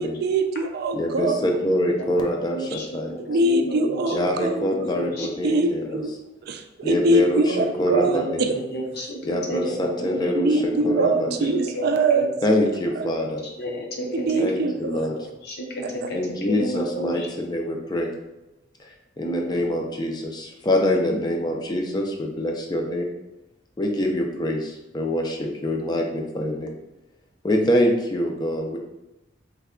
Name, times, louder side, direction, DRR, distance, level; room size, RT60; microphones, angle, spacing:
voice 1, 0.0-1.4 3.3-4.7 5.4-6.1 6.4-8.6 10.3-12.3 13.0-13.1 14.1-15.0 16.0-16.1 21.1-21.2, right 2 dB, 50° right, 6 dB, 0.3 m, -23 dB
voice 2, 0.9-3.2 4.1-6.0 6.8-8.5 9.2-11.5 12.4-13.4 14.4-15.1 16.1-18.2 18.8-23.1 23.8-26.7 27.4-28.8, left 1 dB, 20° left, 1 dB, 0.4 m, -25 dB
voice 3, 2.3-2.9 3.3-4.2 4.7-5.3 5.9-6.0 8.0-10.2 10.5-11.4 11.7-11.8 12.1-12.3 13.4-14.4 14.9-15.0 15.4-17.3 19.2-19.5, right 1 dB, 55° left, -1 dB, 0.7 m, -31 dB
3.3 x 2.2 x 3.6 m, 0.98 s
head